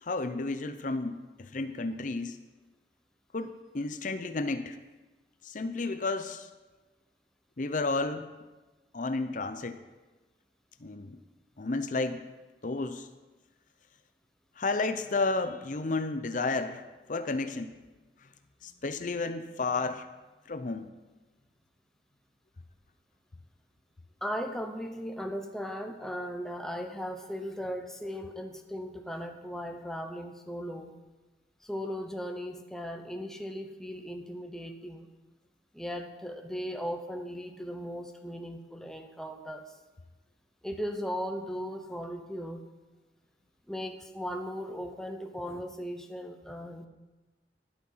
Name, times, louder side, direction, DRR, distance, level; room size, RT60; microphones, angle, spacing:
voice 1, 0.0-2.4 3.3-4.8 5.4-6.5 7.6-8.3 8.9-9.8 10.8-11.2 11.6-12.2 12.6-13.1 14.6-16.8 17.1-17.7 18.6-20.1 20.5-20.9, left 3 dB, 45° left, 9 dB, 0.6 m, -32 dB
voice 2, 24.2-31.0 31.6-35.1 35.7-39.7 40.6-42.6 43.7-46.9, equal, 5° left, 4 dB, 0.9 m, -37 dB
12.0 x 11.0 x 5.6 m, 1.2 s
head